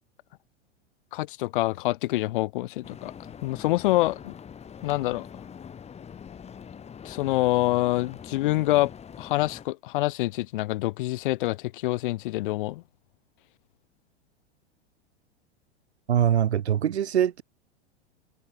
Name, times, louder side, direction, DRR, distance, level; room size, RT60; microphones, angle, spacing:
voice 1, 1.1-3.1 3.4-4.3 4.8-5.3 7.0-8.9 9.2-12.8, left 18 dB, 50° left, 0.5 m, -26 dB
sound 1, 2.8-9.7, left 7 dB, 20° left, 2.5 m, -44 dB
voice 2, 16.1-17.4, right 10 dB, 70° right, 1.4 m, -23 dB
figure-of-eight pair, 95°, 34 cm